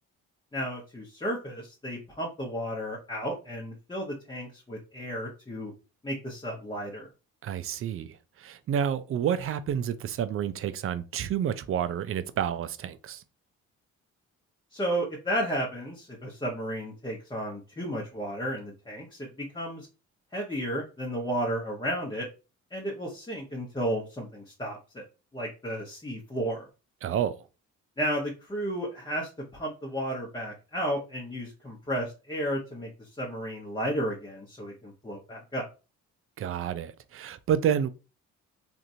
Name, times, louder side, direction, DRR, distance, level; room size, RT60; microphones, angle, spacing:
voice 1, 0.5-5.7 6.0-7.1 14.7-19.9 20.3-22.3 22.7-25.0 25.3-26.7 28.0-35.7, equal, 15° left, 0.9 m, -33 dB
voice 2, 7.4-8.1 8.4-13.2 27.0-27.3 36.4-37.9, right 9 dB, 45° right, 0.4 m, -29 dB
2.9 x 2.5 x 2.6 m
cardioid pair, 90°, 30 cm